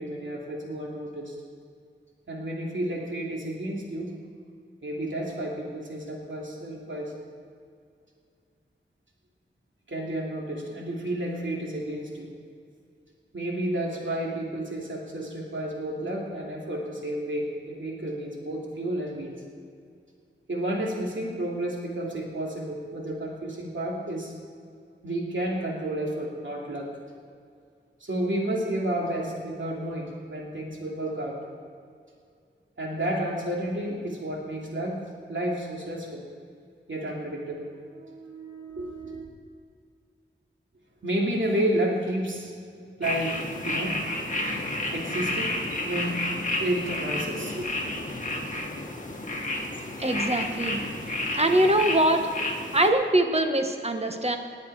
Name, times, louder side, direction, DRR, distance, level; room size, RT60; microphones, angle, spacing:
voice 1, 0.0-1.3 2.3-4.1 4.8-7.1 9.9-12.3 13.3-19.3 20.5-24.3 25.0-26.9 28.0-31.4 32.8-35.0 35.3-36.3 36.9-39.3 41.0-42.5 43.0-44.0 44.9-45.6 45.8-47.6, right 1 dB, 70° right, -2 dB, 2.8 m, -31 dB
sound 1, 43.0-52.9, left 1 dB, 40° left, 1.9 m, -31 dB
voice 2, 50.0-50.8 51.3-52.3 52.7-54.4, right 1 dB, 30° right, 5 dB, 1.3 m, -23 dB
20.0 x 8.6 x 4.8 m, 2.3 s
wide cardioid pair, 60°, 20 cm